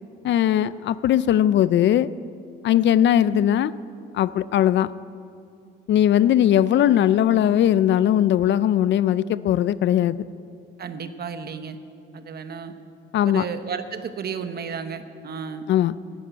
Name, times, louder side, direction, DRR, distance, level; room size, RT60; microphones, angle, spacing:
voice 1, 0.2-2.1 2.6-3.7 4.1-4.9 5.9-10.2 13.1-13.4 15.7-15.9, left 11 dB, 65° left, 17 dB, 0.5 m, -19 dB
voice 2, 10.8-11.8 12.1-12.7 13.2-15.7, right 6 dB, 50° right, 9 dB, 1.0 m, -33 dB
11.5 x 10.0 x 9.1 m, 2.5 s
cardioid pair, 90°, 20 cm